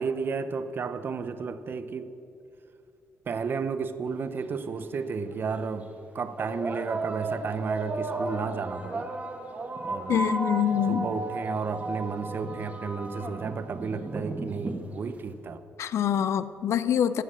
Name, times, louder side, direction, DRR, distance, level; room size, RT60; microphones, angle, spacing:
voice 1, 0.0-2.1 3.3-5.9 6.1-9.1 9.8-10.2 10.9-15.6, right 5 dB, 45° right, 12 dB, 0.6 m, -32 dB
sound 1, 4.3-4.4 5.3-5.5 6.4-15.3, right 2 dB, 30° right, 1.3 m, -34 dB
voice 2, 10.1-11.1 15.8-17.2, left 9 dB, 65° left, 14 dB, 0.5 m, -25 dB
14.5 x 6.5 x 6.3 m, 2.7 s
cardioid pair, 115°, 5 cm